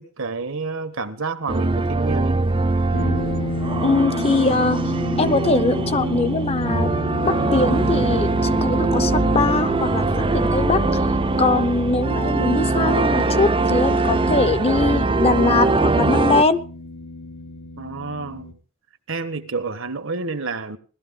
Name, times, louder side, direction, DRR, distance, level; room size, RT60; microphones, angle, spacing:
voice 1, 0.0-2.4 17.8-18.6 19.1-20.8, right 4 dB, 65° right, 11 dB, 1.3 m, -29 dB
sound 1, 1.5-16.4, right 3 dB, 25° right, 0.7 m, -22 dB
sound 2, 2.9-18.5, left 1 dB, 85° left, 1.8 m, -31 dB
voice 2, 3.8-4.8 5.2-6.9 7.2-11.0 11.4-16.6, left 3 dB, 30° left, 11 dB, 0.8 m, -21 dB
17.5 x 13.5 x 3.8 m, 0.38 s
head